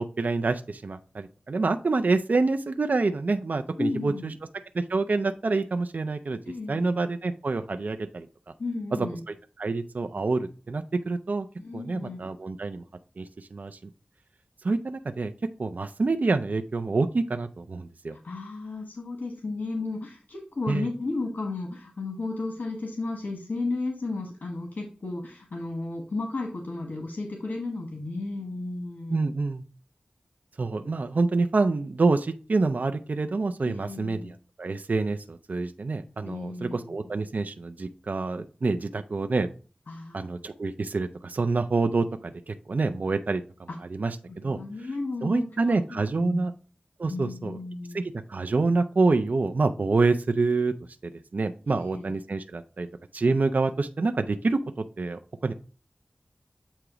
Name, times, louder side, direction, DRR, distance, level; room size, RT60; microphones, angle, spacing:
voice 1, 0.0-4.3 4.7-6.4 6.7-8.3 9.3-11.5 11.7-12.8 13.2-13.8 14.6-15.3 15.6-18.2 20.7-20.9 29.1-29.6 30.6-39.5 40.1-44.6 45.2-46.5 47.0-47.6 47.9-48.0 48.3-50.7 51.0-52.9 53.1-55.5, right 3 dB, 65° right, 7 dB, 0.4 m, -27 dB
voice 2, 3.8-4.4 6.5-6.9 8.6-9.2 11.6-12.3 18.1-29.2 33.6-34.3 36.2-37.1 39.9-40.4 43.7-43.8 44.3-46.5 47.1-48.0 51.7-52.1, left 3 dB, 75° left, 1 dB, 1.3 m, -34 dB
8.0 x 2.9 x 4.9 m, 0.37 s
wide cardioid pair, 45°, 3 cm